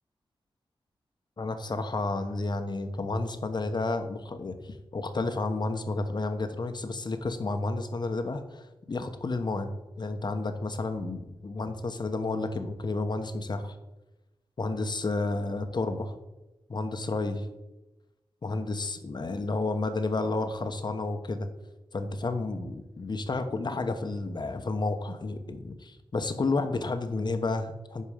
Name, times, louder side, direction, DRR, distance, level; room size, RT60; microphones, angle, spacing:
voice 1, 1.4-9.7 10.0-13.7 14.6-16.1 16.7-17.5 18.4-21.5 21.9-28.0, left 3 dB, 45° left, 8 dB, 1.0 m, -31 dB
11.0 x 4.4 x 5.0 m, 1.0 s
cardioid pair, 55°, 10 cm